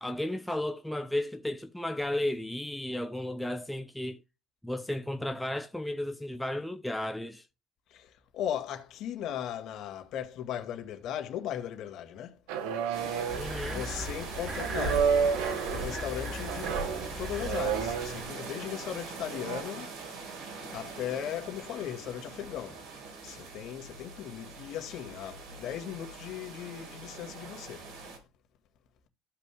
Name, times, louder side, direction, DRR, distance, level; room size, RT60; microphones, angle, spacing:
voice 1, 0.0-4.2 4.6-7.5 13.4-13.8, left 1 dB, 5° left, 0.6 m, -34 dB
voice 2, 7.9-12.4 13.6-19.9 20.6-22.8 23.2-27.9, left 10 dB, 55° left, 2.0 m, -38 dB
sound 1, 12.5-13.6 14.6-15.9 16.4-18.5 19.3-19.6, right 6 dB, 80° right, 1.5 m, -30 dB
sound 2, 12.9-28.2, right 4 dB, 65° right, 4.5 m, -43 dB
sound 3, 13.3-18.3, right 1 dB, 30° right, 3.4 m, -38 dB
15.0 x 5.5 x 2.3 m
cardioid pair, 130°, 0 cm